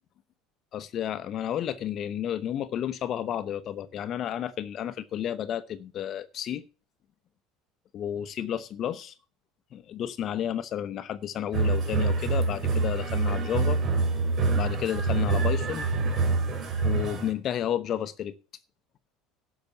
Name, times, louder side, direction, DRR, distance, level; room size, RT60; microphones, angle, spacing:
voice 1, 0.7-6.6 7.9-9.1 9.7-13.8 14.5-15.9 16.8-18.3, left 10 dB, 50° left, 0.9 m, -31 dB
sound 1, 11.5-17.3, right 3 dB, 40° right, 3.3 m, -26 dB
12.0 x 6.0 x 6.9 m
supercardioid pair, 95°, 0 cm